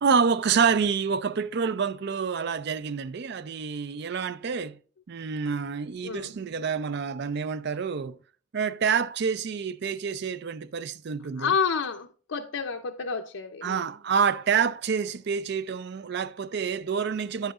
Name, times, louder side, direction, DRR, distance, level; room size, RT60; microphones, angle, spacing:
voice 1, 0.0-4.8 5.1-8.1 8.5-11.5 13.6-17.5, right 6 dB, 55° right, 0.4 m, -27 dB
voice 2, 11.4-13.9, left 6 dB, 75° left, 0.6 m, -29 dB
10.0 x 8.0 x 2.4 m
head